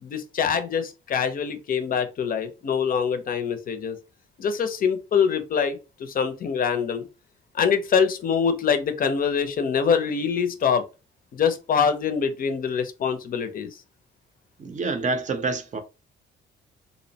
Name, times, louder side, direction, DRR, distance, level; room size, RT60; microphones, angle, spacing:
voice 1, 0.0-4.0 4.4-7.1 7.5-10.8 11.3-13.8, left 6 dB, 45° left, 0.5 m, -24 dB
voice 2, 14.6-15.8, right 3 dB, 40° right, 0.5 m, -27 dB
2.7 x 2.0 x 2.7 m
cardioid pair, 90°, 20 cm